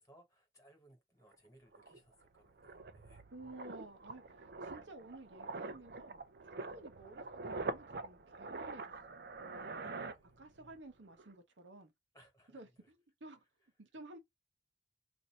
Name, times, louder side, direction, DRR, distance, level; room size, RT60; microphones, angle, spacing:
voice 1, 0.0-3.2 9.9-10.4 12.1-12.9, right 1 dB, 20° left, 1.4 m, -65 dB
sound 1, 1.3-1.4 1.7-10.8 11.0-11.3, right 3 dB, 55° right, 0.5 m, -45 dB
voice 2, 3.3-6.2 6.5-8.8 9.1-11.9 12.5-13.4 13.8-14.2, right 2 dB, 80° right, 0.9 m, -54 dB
2.7 x 2.6 x 4.3 m
head